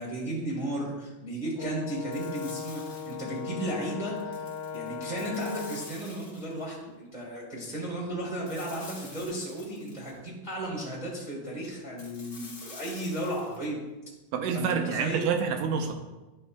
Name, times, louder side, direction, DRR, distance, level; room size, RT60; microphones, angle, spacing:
voice 1, 0.0-4.4 4.7-13.8 14.5-15.3, right 1 dB, 30° right, -5 dB, 0.8 m, -34 dB
Brass instrument, 1.6-6.0, left 7 dB, 85° left, 2.5 m, -38 dB
sound 1, 2.1-3.5 4.2-6.7 8.5-10.2 12.0-13.7, left 3 dB, 50° left, 1.1 m, -48 dB
voice 2, 14.3-15.9, right 6 dB, 85° right, 4 dB, 2.4 m, -28 dB
12.5 x 5.4 x 2.3 m, 1.1 s
omnidirectional pair, 3.8 m